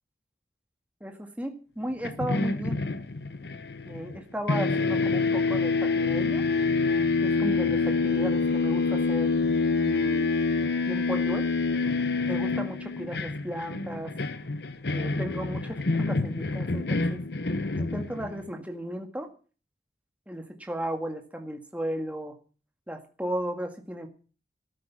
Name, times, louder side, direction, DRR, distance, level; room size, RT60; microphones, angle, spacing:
voice 1, 1.0-2.8 3.9-6.4 7.2-9.3 9.8-10.3 10.9-11.5 12.3-14.1 14.9-17.2 17.7-19.3 20.3-22.3 22.9-24.1, right 1 dB, 10° right, 4 dB, 1.8 m, -35 dB
sound 1, 2.0-4.2 4.5-18.5, left 3 dB, 65° left, 0.9 m, -27 dB
13.0 x 13.0 x 5.8 m, 0.38 s
head